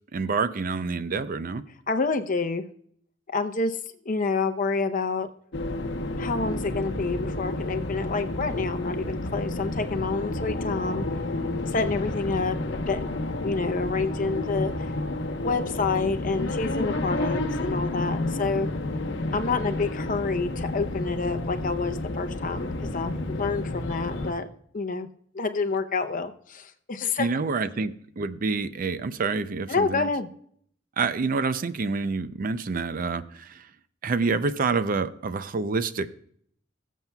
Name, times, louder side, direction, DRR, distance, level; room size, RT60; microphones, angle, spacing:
voice 1, 0.1-1.6 27.2-30.1 31.0-33.7 34.0-36.1, right 4 dB, 45° right, 13 dB, 0.5 m, -27 dB
voice 2, 1.9-2.6 3.3-3.8 4.0-5.3 6.2-11.1 11.7-12.6 12.9-13.2 13.4-14.9 15.4-18.7 19.3-24.5 24.7-25.1 25.3-27.3 29.7-30.3, left 4 dB, 45° left, 8 dB, 0.7 m, -28 dB
sound 1, 5.5-24.3, left 2 dB, 65° left, 0.9 m, -30 dB
21.0 x 7.3 x 2.3 m, 0.63 s
head